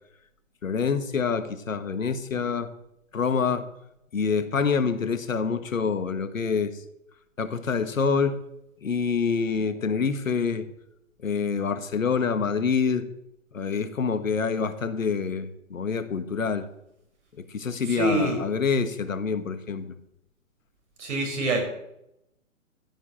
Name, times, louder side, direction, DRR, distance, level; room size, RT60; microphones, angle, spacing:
voice 1, 0.6-2.7 3.1-3.7 4.1-6.7 7.4-8.4 8.8-10.7 11.2-13.1 13.5-16.7 17.4-19.9, left 5 dB, 75° left, 12 dB, 1.6 m, -26 dB
voice 2, 17.8-18.4 21.0-21.6, right 2 dB, 60° right, 2 dB, 5.6 m, -25 dB
14.5 x 7.4 x 7.5 m, 0.80 s
figure-of-eight pair, 135°, 40 cm